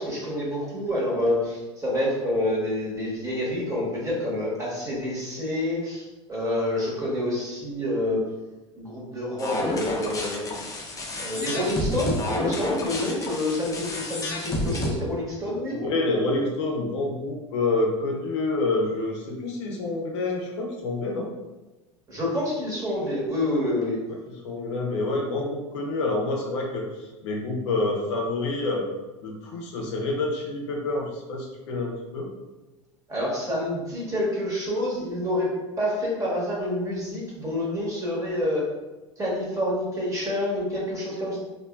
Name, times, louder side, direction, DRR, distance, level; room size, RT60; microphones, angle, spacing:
voice 1, 0.0-8.2 8.8-10.4 11.2-15.8 22.1-24.0 33.1-35.5 35.8-38.6 39.2-41.4, left 1 dB, 20° right, -5 dB, 1.1 m, -28 dB
sound 1, 9.4-14.9, left 1 dB, 20° left, 0.5 m, -29 dB
voice 2, 15.7-21.3 24.4-28.9 29.2-32.3, left 2 dB, 65° left, 0 dB, 0.6 m, -27 dB
3.1 x 2.2 x 2.2 m, 1.1 s
figure-of-eight pair, 80°, 16 cm